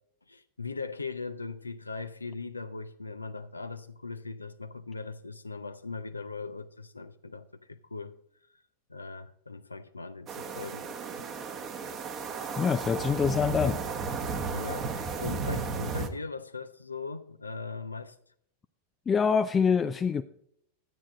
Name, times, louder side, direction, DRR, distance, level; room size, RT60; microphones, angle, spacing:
voice 1, 0.3-8.1 8.9-11.3 13.0-13.2 14.5-18.2, left 4 dB, 80° left, 0.6 m, -39 dB
sound 1, 10.3-16.1, right 4 dB, 30° right, 1.1 m, -34 dB
voice 2, 12.6-13.8 19.1-20.2, left 6 dB, 20° left, 0.4 m, -25 dB
12.5 x 8.6 x 3.9 m
figure-of-eight pair, 90°, 0 cm